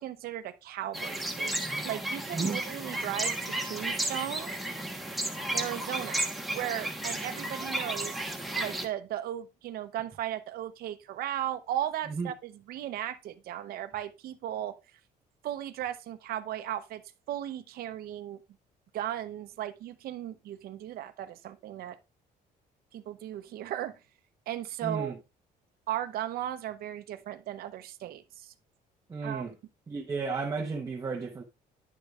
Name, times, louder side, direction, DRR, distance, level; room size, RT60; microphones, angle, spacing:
voice 1, 0.0-1.6 1.8-4.5 5.5-8.2 8.6-14.7 15.4-17.0 17.3-18.4 18.9-22.0 22.9-23.9 24.5-25.1 25.9-28.5 29.2-29.4, right 12 dB, 70° right, 0.8 m, -36 dB
sound 1, 0.9-8.9, right 1 dB, ahead, 1.2 m, -33 dB
voice 2, 2.3-2.6 12.1-12.3 24.8-25.2 29.1-29.5 29.9-31.4, right 4 dB, 20° right, 0.9 m, -33 dB
10.5 x 6.3 x 2.4 m
cardioid pair, 130°, 16 cm